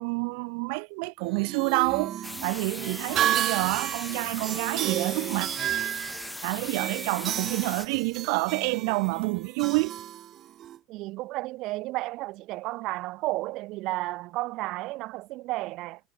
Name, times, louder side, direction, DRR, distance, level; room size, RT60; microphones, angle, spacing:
voice 1, 0.0-5.5 6.4-9.9, right 36 dB, 75° right, 5.3 m, -28 dB
sound 1, 1.2-10.8, right 11 dB, 40° right, 3.5 m, -32 dB
sound 2, 2.2-7.9, left 2 dB, 5° left, 4.6 m, -39 dB
voice 2, 10.9-16.0, right 19 dB, 60° right, 4.3 m, -33 dB
supercardioid pair, 130°, 0 cm